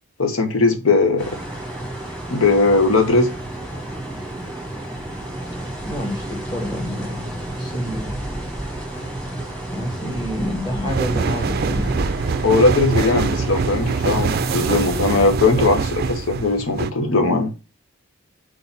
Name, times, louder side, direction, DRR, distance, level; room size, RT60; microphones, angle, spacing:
voice 1, 0.2-1.3 2.3-3.3 12.4-17.5, left 3 dB, 90° left, 1.0 m, -18 dB
sound 1, 1.2-15.3, right 1 dB, 5° left, 1.4 m, -31 dB
voice 2, 5.9-8.2 9.7-12.0, equal, 25° left, 1.8 m, -28 dB
sound 2, 10.9-16.9, right 4 dB, 50° right, 0.4 m, -24 dB
4.6 x 4.1 x 5.7 m
head